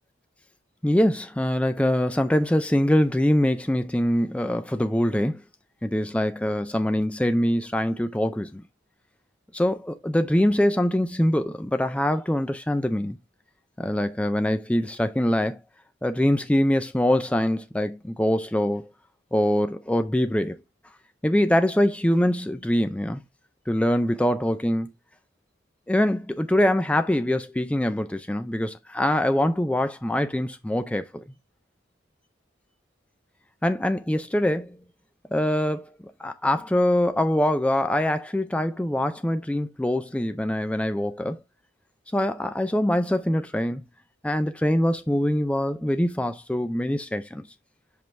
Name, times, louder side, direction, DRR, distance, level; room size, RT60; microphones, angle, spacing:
voice 1, 0.8-5.4 5.8-8.6 9.5-13.2 13.8-15.6 16.0-18.9 19.3-20.6 21.2-23.2 23.7-24.9 25.9-31.2 33.6-34.8 35.3-35.9 36.2-41.4 42.1-43.8 44.2-47.4, left 1 dB, 5° left, 0.3 m, -23 dB
6.0 x 5.2 x 3.1 m
head